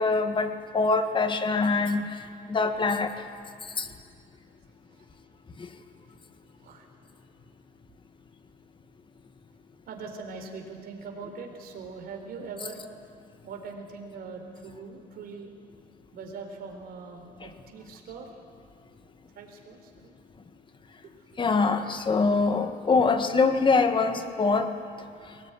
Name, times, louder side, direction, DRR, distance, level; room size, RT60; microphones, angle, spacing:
voice 1, 0.0-2.1 2.5-3.1 3.8-3.9 21.4-24.7, left 4 dB, 30° left, 8 dB, 1.8 m, -24 dB
voice 2, 9.9-12.9 13.4-15.5 16.1-18.3 19.3-20.1 21.0-21.3, right 4 dB, 65° right, 3 dB, 4.2 m, -42 dB
22.5 x 19.0 x 9.8 m, 2.3 s
cardioid pair, 110°, 17 cm